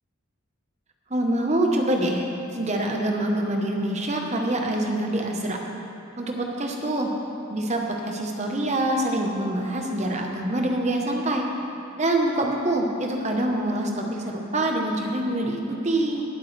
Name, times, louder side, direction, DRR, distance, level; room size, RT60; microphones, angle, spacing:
voice 1, 1.1-2.3 2.5-5.6 6.2-7.1 7.5-11.5 12.0-16.2, right 1 dB, 30° right, 1 dB, 1.0 m, -25 dB
17.5 x 8.3 x 3.3 m, 2.9 s
head